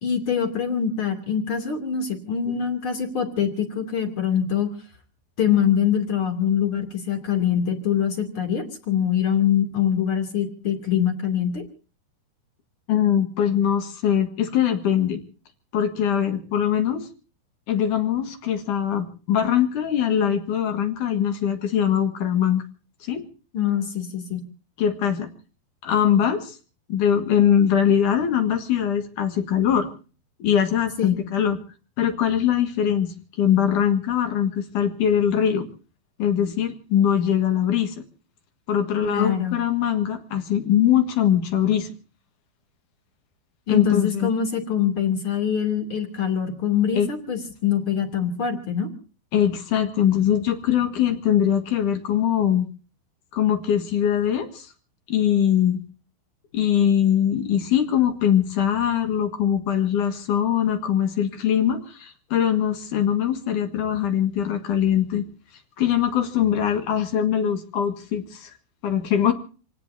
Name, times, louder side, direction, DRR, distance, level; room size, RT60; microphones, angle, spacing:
voice 1, 0.0-4.7 5.4-11.6 23.5-24.4 31.0-31.2 39.0-39.6 43.7-48.9, left 8 dB, 35° left, 7 dB, 3.0 m, -24 dB
voice 2, 12.9-15.2 15.7-17.1 17.7-22.6 23.0-23.2 24.8-25.3 25.8-26.6 26.9-29.9 30.4-31.6 32.0-35.7 36.2-38.0 38.7-41.9 43.7-44.3 47.0-47.1 49.3-52.7 53.3-54.7 55.1-55.8 56.5-65.2 65.8-68.5 68.8-69.3, left 9 dB, 60° left, 7 dB, 2.8 m, -22 dB
28.0 x 18.0 x 2.7 m, 0.37 s
omnidirectional pair, 4.8 m